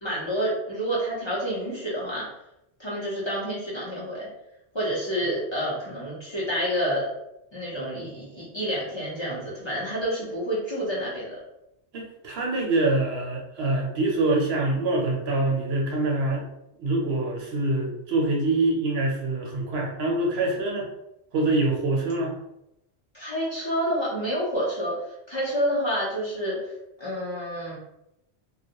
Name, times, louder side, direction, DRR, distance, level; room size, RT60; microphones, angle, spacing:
voice 1, 0.0-2.3 2.8-4.3 4.7-7.1 7.5-11.4 23.1-24.9 25.3-26.6 27.0-27.8, equal, 30° left, -8 dB, 0.7 m, -28 dB
voice 2, 11.9-16.5 16.8-20.9 21.3-22.3, right 2 dB, 70° right, -1 dB, 0.8 m, -25 dB
2.3 x 2.1 x 2.8 m, 0.84 s
omnidirectional pair, 1.1 m